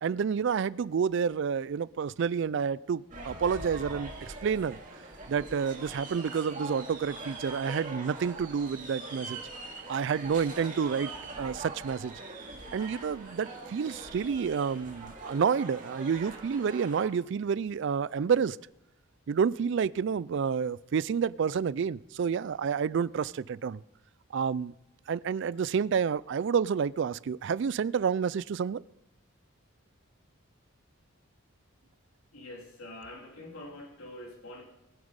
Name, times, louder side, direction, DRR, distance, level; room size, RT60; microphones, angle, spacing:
voice 1, 0.0-4.8 5.3-9.4 9.9-11.1 11.4-12.1 12.7-18.6 19.3-23.8 24.3-24.7 25.1-28.8, right 6 dB, 60° right, 21 dB, 0.3 m, -29 dB
sound 1, 3.1-17.1, right 2 dB, 40° right, 2.1 m, -43 dB
voice 2, 32.3-34.6, left 1 dB, 90° left, 0 dB, 3.3 m, -45 dB
20.0 x 7.2 x 5.2 m, 0.90 s
head